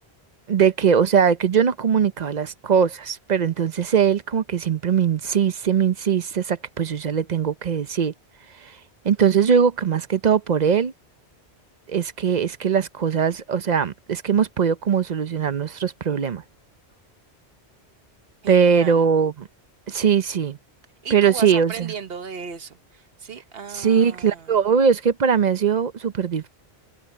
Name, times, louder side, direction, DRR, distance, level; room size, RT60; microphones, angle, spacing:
voice 1, 0.5-8.1 9.0-10.9 11.9-16.4 18.5-19.5 19.9-20.6 21.1-21.9 23.7-26.5, right 7 dB, 45° right, 0.7 m, -20 dB
voice 2, 18.4-19.0 21.0-24.6, right 6 dB, 65° right, 1.4 m, -36 dB
omnidirectional pair, 1.1 m